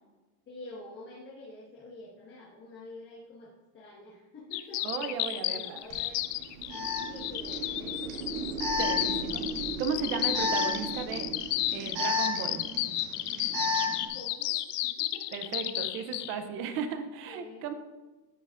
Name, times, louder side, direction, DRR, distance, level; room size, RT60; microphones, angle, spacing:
voice 1, 0.5-8.5 14.1-15.5 16.6-16.7 17.3-17.6, left 2 dB, 25° left, -5 dB, 1.4 m, -48 dB
sound 1, 4.5-16.4, left 16 dB, 75° left, 0.7 m, -32 dB
voice 2, 4.8-5.8 8.8-9.5 9.8-11.3 11.7-12.6 15.3-17.7, right 6 dB, 30° right, 9 dB, 0.5 m, -35 dB
Alarm, 5.9-6.0 6.7-14.1, left 3 dB, 55° right, 2.4 m, -33 dB
sound 2, 6.1-12.2, right 4 dB, 85° right, 0.9 m, -39 dB
13.5 x 6.4 x 2.4 m, 1.2 s
supercardioid pair, 160°, 47 cm